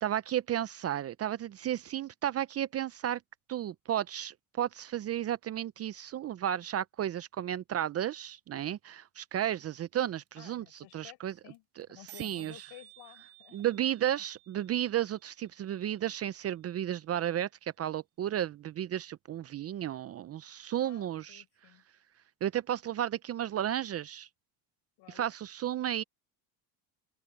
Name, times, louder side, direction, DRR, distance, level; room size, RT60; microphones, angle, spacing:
voice 1, 0.0-3.2 3.5-10.6 10.9-11.3 11.8-11.9 12.2-12.6 13.5-21.4 22.4-24.3 25.1-26.0, right 11 dB, 35° right, 0.6 m, -33 dB
sound 1, 10.0-10.1 10.3-10.4 10.5-10.8 11.0-11.1 11.3-11.5 11.8-11.9 12.1-16.0, right 14 dB, 50° right, 1.2 m, -55 dB
voice 2, 10.4-13.6 20.8-21.8 25.0-25.3, left 18 dB, 65° left, 4.7 m, -55 dB
open air
supercardioid pair, 110°, 45 cm